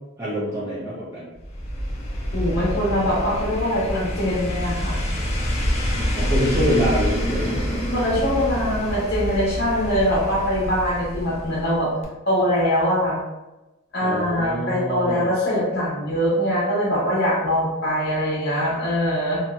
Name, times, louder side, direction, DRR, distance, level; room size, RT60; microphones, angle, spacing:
voice 1, 0.2-1.3 6.1-7.6 14.0-15.2, equal, 15° right, -11 dB, 0.7 m, -25 dB
sound 1, 1.4-11.8 12.0-12.1, equal, 30° left, 0.5 m, -26 dB
voice 2, 2.3-5.0 7.9-11.9 12.3-13.2 13.9-19.4, equal, 55° left, -6 dB, 1.1 m, -22 dB
2.9 x 2.8 x 2.3 m, 1.0 s
head